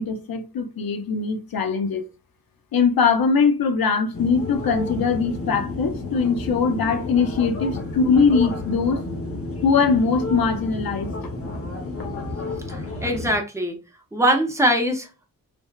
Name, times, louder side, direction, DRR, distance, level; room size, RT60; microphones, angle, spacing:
voice 1, 0.0-2.0 2.7-9.0 9.6-11.1, left 5 dB, 85° left, 0.6 m, -21 dB
sound 1, 4.1-13.4, left 2 dB, 40° left, 0.7 m, -31 dB
voice 2, 12.7-13.8 14.1-15.2, right 1 dB, 10° right, 0.5 m, -22 dB
3.4 x 2.0 x 2.3 m
wide cardioid pair, 175°, 35 cm